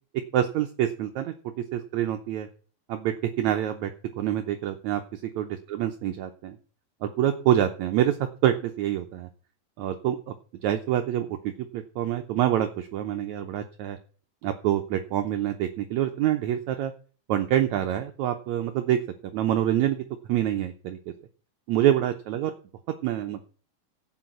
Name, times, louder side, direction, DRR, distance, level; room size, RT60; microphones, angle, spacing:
voice 1, 0.3-1.3 1.7-2.5 2.9-6.6 7.0-9.3 9.8-10.3 10.6-14.0 14.4-16.9 17.3-21.0 21.7-22.5 23.0-23.5, right 11 dB, 75° right, 5 dB, 1.7 m, -26 dB
12.0 x 8.4 x 6.0 m, 0.40 s
omnidirectional pair, 4.2 m